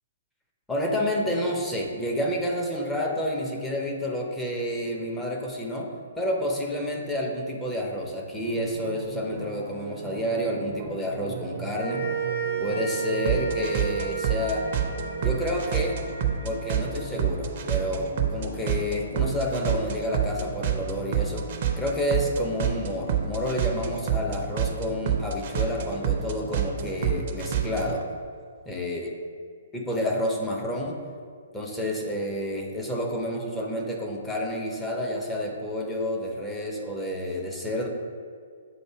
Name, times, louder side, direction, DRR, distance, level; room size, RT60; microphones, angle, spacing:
voice 1, 0.7-12.0 12.6-14.7 15.2-16.0 16.4-21.5 21.8-28.0 28.7-29.1 29.7-31.0 31.5-37.9, equal, 5° left, -1 dB, 0.7 m, -29 dB
sound 1, 8.4-28.0, right 7 dB, 40° right, 0.6 m, -30 dB
sound 2, 11.8-18.2, right 6 dB, 75° left, 1.5 m, -33 dB
7.8 x 2.6 x 4.6 m, 2.1 s
figure-of-eight pair, 120°, 0 cm